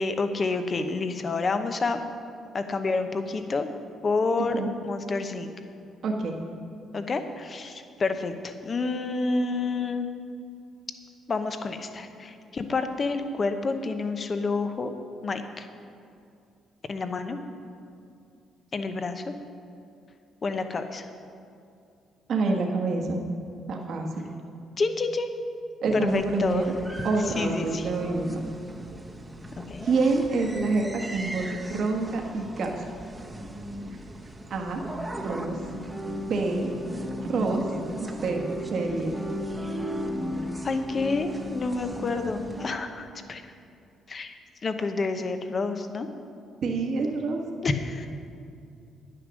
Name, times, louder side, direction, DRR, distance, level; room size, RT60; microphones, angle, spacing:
voice 1, 0.0-2.0 2.5-3.7 4.0-5.5 6.9-10.1 11.3-14.9 15.2-15.7 16.9-17.4 18.7-19.3 20.4-21.0 24.8-25.5 25.9-26.6 27.4-27.9 29.7-29.9 36.9-37.0 40.6-43.4 44.1-44.3 44.6-46.1 47.6-48.1, left 3 dB, 35° left, 8 dB, 0.8 m, -29 dB
voice 2, 6.0-6.4 22.3-23.2 23.7-24.3 25.8-26.7 27.0-28.4 29.8-32.8 34.5-34.8 35.2-35.6 36.3-36.7 37.2-37.6 38.0-39.1 46.6-47.4, right 3 dB, 60° right, 1 dB, 1.3 m, -27 dB
sound 1, 26.1-42.7, equal, 10° right, 1.0 m, -36 dB
9.8 x 9.8 x 6.4 m, 2.5 s
cardioid pair, 110°, 0 cm